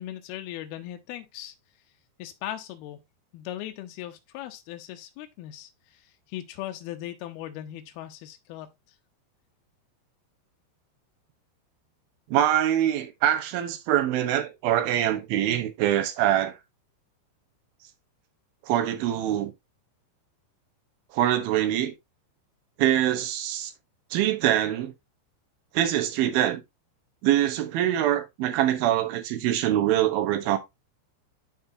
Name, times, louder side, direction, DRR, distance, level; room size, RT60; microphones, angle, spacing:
voice 1, 0.0-1.6 2.2-3.0 3.3-8.7, left 13 dB, 80° left, 2.3 m, -38 dB
voice 2, 12.3-16.6 18.7-19.5 21.1-21.9 22.8-23.7 24.1-24.9 25.7-26.6 27.2-30.6, right 11 dB, 70° right, 2.4 m, -24 dB
11.5 x 4.3 x 2.7 m
omnidirectional pair, 5.3 m